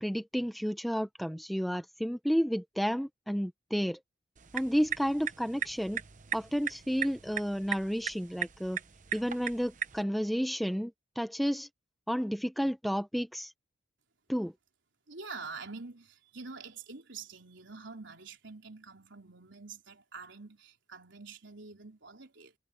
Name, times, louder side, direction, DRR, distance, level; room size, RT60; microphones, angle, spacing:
voice 1, 0.0-4.0 4.5-6.0 6.3-8.8 9.1-11.7 12.1-13.5 14.3-14.5, equal, ahead, 0.7 m, -31 dB
sound 1, 4.4-10.0, right 9 dB, 40° right, 0.9 m, -38 dB
voice 2, 15.1-22.5, right 4 dB, 65° right, 3.6 m, -46 dB
head